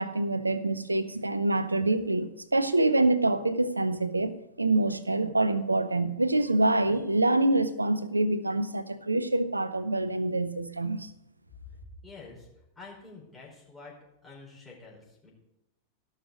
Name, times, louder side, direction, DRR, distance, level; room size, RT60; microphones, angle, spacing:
voice 1, 0.0-11.1, right 2 dB, 80° right, 0.6 m, -26 dB
voice 2, 11.7-12.5 12.7-14.0 14.2-15.3, left 3 dB, 10° left, 4.6 m, -48 dB
16.0 x 6.6 x 5.0 m
figure-of-eight pair, 90°, 0 cm